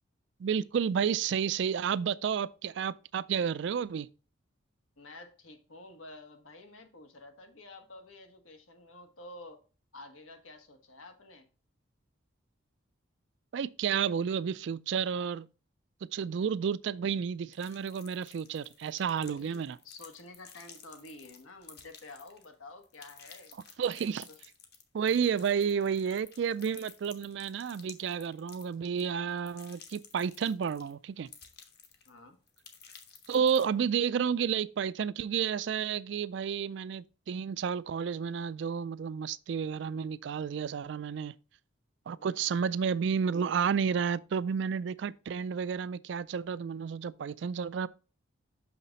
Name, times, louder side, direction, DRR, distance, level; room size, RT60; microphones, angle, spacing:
voice 1, 0.4-4.1 13.5-15.5 16.0-19.8 23.8-24.3 24.9-31.3 33.3-41.3 42.1-47.9, right 7 dB, 60° right, 0.3 m, -31 dB
voice 2, 5.0-9.6 9.9-11.5 19.1-23.5 24.3-24.4 32.0-32.4 42.2-42.5, left 2 dB, 85° left, 1.4 m, -50 dB
sound 1, 17.5-22.5 22.8-30.9 31.2-32.2 32.5-33.6, left 7 dB, 50° left, 1.1 m, -53 dB
6.3 x 5.8 x 4.0 m
head